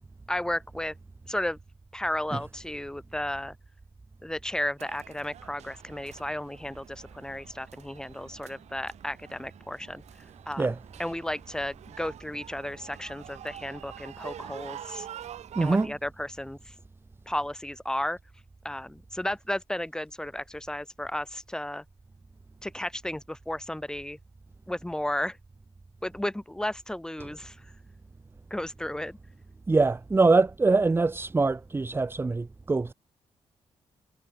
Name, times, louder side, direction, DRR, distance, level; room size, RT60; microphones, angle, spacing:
voice 1, 0.3-1.0 1.3-1.6 1.9-3.5 4.2-10.0 10.5-15.1 15.6-16.7 17.3-18.2 18.6-21.8 22.6-24.2 24.7-25.4 26.0-27.6 28.5-29.2, left 1 dB, 5° left, 7.3 m, -33 dB
sound 1, 4.8-15.9, right 11 dB, 85° right, 3.2 m, -46 dB
voice 2, 15.5-15.9 27.2-27.3 29.7-32.9, right 3 dB, 20° right, 1.1 m, -24 dB
cardioid pair, 120°, 11 cm